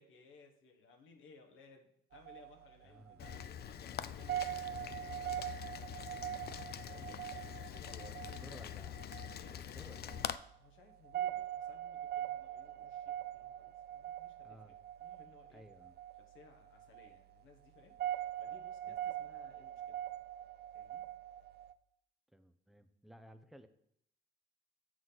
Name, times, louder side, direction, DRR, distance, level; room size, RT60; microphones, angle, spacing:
voice 1, 0.0-5.6 6.8-8.7 9.0-9.8 10.6-15.7 16.2-20.0 20.7-21.1, left 4 dB, 85° left, 4 dB, 1.2 m, -61 dB
sound 1, 2.1-21.7, right 12 dB, 55° right, 0.5 m, -43 dB
voice 2, 2.8-3.2 6.4-7.5 7.8-9.0 9.5-10.3 14.4-14.7 15.5-15.9 18.9-19.0 22.3-23.7, equal, ahead, 9 dB, 0.7 m, -57 dB
Rain, 3.2-10.4, left 10 dB, 55° left, 0.4 m, -44 dB
7.3 x 6.2 x 4.0 m, 0.72 s
cardioid pair, 90°, 20 cm